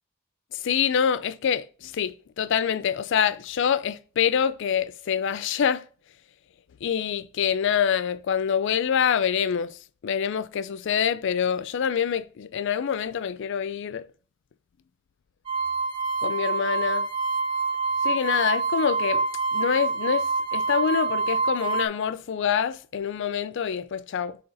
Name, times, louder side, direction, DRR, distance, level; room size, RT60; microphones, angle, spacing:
voice 1, 0.5-5.8 6.8-9.8 10.0-14.1 16.2-17.1 18.0-19.2 19.5-20.3 20.5-24.4, left 7 dB, 65° left, 0.4 m, -26 dB
sound 1, 15.5-21.9, right 4 dB, 25° right, 0.6 m, -26 dB
9.9 x 3.8 x 2.6 m
head